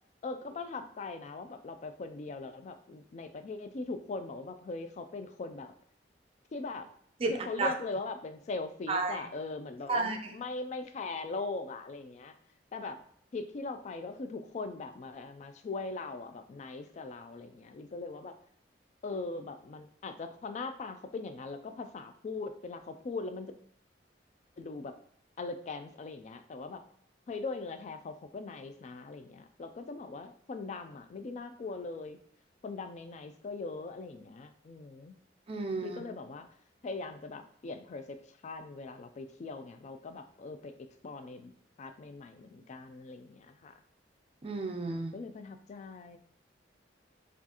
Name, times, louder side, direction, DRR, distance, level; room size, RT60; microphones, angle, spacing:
voice 1, 0.2-5.7 6.5-6.9 7.3-12.3 12.7-13.0 13.3-18.3 19.0-23.5 24.6-24.9 25.4-26.8 27.3-32.2 32.6-35.1 35.8-36.5 36.8-38.2 38.4-40.7 41.0-41.5 41.8-43.7 45.1-46.2, left 3 dB, 40° left, 9 dB, 0.3 m, -40 dB
voice 2, 7.2-7.7 8.9-9.3 9.9-10.3 35.5-36.0 44.4-45.2, right 3 dB, 30° right, 3 dB, 0.4 m, -32 dB
4.5 x 2.4 x 2.8 m, 0.63 s
head